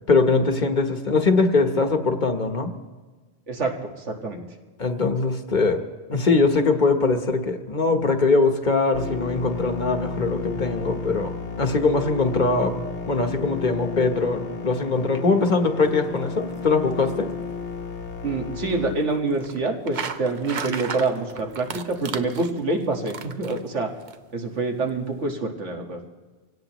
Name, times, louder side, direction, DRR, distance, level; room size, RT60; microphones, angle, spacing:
voice 1, 0.1-2.7 4.8-5.8 6.1-12.8 13.1-17.3, left 3 dB, 45° left, 6 dB, 1.1 m, -22 dB
voice 2, 4.1-4.4 18.2-23.9 24.3-26.0, right 3 dB, 90° right, 3 dB, 1.9 m, -26 dB
sound 1, 8.9-18.9, left 5 dB, 75° left, 1.5 m, -33 dB
sound 2, 15.8-24.2, right 6 dB, 50° right, 0.8 m, -37 dB
25.5 x 17.5 x 3.0 m, 1.3 s
omnidirectional pair, 1.2 m